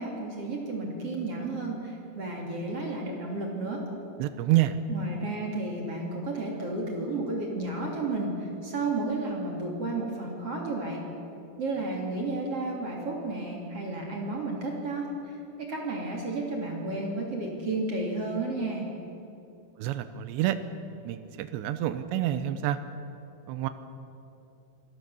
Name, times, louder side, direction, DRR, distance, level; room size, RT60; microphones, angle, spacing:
voice 1, 0.0-3.8 4.9-11.0 11.6-18.9, right 2 dB, 40° right, -1 dB, 2.8 m, -32 dB
voice 2, 4.2-4.8 19.8-20.6 21.0-22.8 23.5-23.7, right 13 dB, 80° right, 11 dB, 2.8 m, -27 dB
26.0 x 18.5 x 7.1 m, 2.8 s
omnidirectional pair, 5.7 m